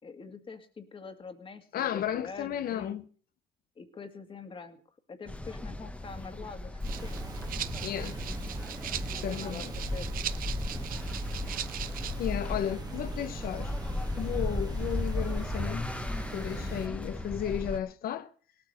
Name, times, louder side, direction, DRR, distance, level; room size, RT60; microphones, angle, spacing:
voice 1, 0.0-3.0 3.8-4.8 5.1-7.2 9.2-9.7 9.9-10.1 16.6-17.0, left 4 dB, 30° left, 2.1 m, -45 dB
voice 2, 1.7-3.0 7.8-8.2 9.2-9.7 12.2-13.7 14.2-15.8 16.2-18.3, left 10 dB, 60° left, 1.1 m, -34 dB
sound 1, 5.3-17.8, left 1 dB, 10° left, 1.2 m, -36 dB
Rattle (instrument), 6.8-12.3, right 11 dB, 55° right, 0.8 m, -40 dB
sound 2, 6.9-16.9, right 3 dB, 25° right, 1.4 m, -41 dB
18.0 x 8.8 x 6.5 m
cardioid pair, 110°, 17 cm